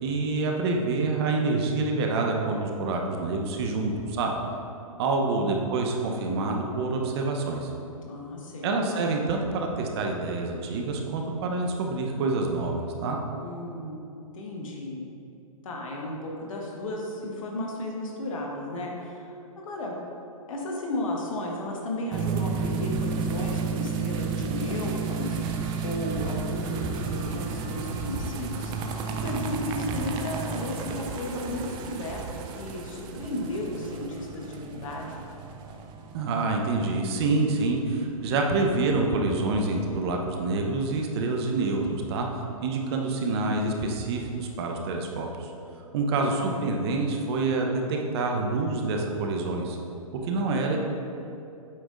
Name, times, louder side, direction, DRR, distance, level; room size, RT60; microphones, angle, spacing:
voice 1, 0.0-4.4 5.0-7.7 8.6-13.2 36.1-42.3 42.6-45.5 45.9-49.8 50.1-50.8, right 3 dB, 45° right, 1 dB, 0.8 m, -27 dB
voice 2, 5.3-5.7 8.0-8.9 13.4-14.1 14.3-15.0 15.6-19.9 20.5-25.4 25.8-28.7 29.2-35.2 46.0-46.6, left 1 dB, 65° left, -1 dB, 1.3 m, -34 dB
sound 1, 22.1-39.6 39.8-39.9 40.2-40.3 40.6-40.7 41.0-41.1, right 5 dB, 25° right, 0.4 m, -32 dB
8.3 x 5.2 x 2.5 m, 2.7 s
hypercardioid pair, 125°, 18 cm